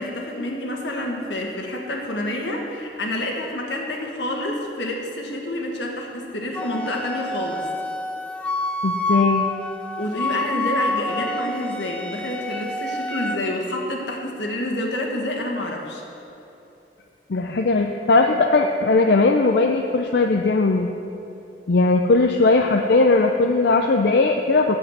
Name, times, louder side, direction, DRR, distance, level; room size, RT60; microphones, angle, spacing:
voice 1, 0.0-7.6 10.0-16.0, left 1 dB, 85° left, 1 dB, 1.6 m, -28 dB
Wind instrument woodwind instrument, 6.5-13.4, left 2 dB, 5° left, 0.4 m, -27 dB
voice 2, 8.8-9.5 17.3-20.9 21.7-24.8, left 3 dB, 65° left, 3 dB, 0.5 m, -18 dB
8.7 x 7.3 x 7.9 m, 3.0 s
head